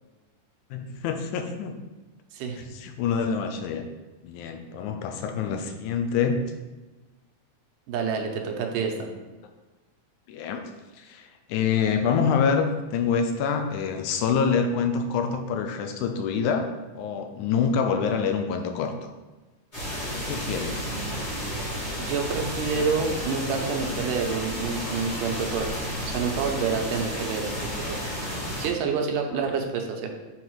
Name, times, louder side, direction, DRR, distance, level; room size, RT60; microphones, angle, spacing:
voice 1, 0.7-1.8 2.7-3.9 4.2-6.5 10.3-19.1 20.1-20.8 29.3-29.4, left 6 dB, 80° left, 5 dB, 1.9 m, -26 dB
voice 2, 2.3-2.7 7.9-9.1 22.0-28.0 28.6-30.1, right 5 dB, 85° right, 3 dB, 2.4 m, -28 dB
sound 1, 19.7-28.7, equal, 20° left, 1.3 m, -32 dB
7.2 x 4.0 x 4.6 m, 1.2 s
omnidirectional pair, 3.8 m